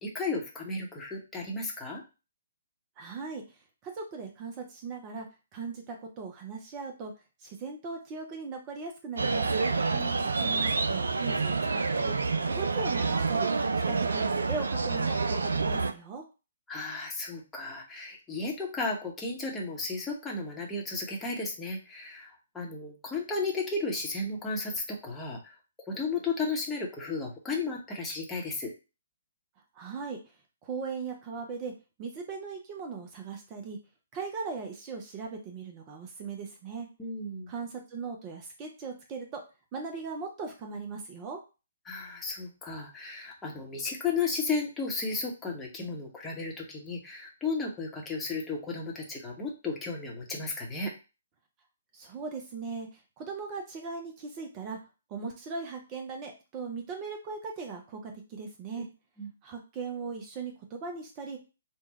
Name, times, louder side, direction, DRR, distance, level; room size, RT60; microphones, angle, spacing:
voice 1, 0.0-2.0 9.9-10.3 16.7-25.6 25.9-28.7 37.0-37.5 41.9-50.9 58.8-58.9 59.2-59.3, left 3 dB, 10° left, -1 dB, 1.0 m, -34 dB
voice 2, 3.0-3.4 3.8-5.3 5.5-7.1 7.4-9.6 10.4-12.2 12.5-13.5 13.9-16.2 29.7-30.2 30.6-31.7 32.0-33.8 34.1-36.9 37.5-39.4 39.7-41.4 51.9-52.9 53.2-54.8 55.1-58.9 59.4-61.4, right 4 dB, 25° right, 3 dB, 0.6 m, -38 dB
sound 1, 9.2-15.9, right 4 dB, 70° right, 0.4 m, -28 dB
3.5 x 2.3 x 4.0 m, 0.31 s
figure-of-eight pair, 130°, 0 cm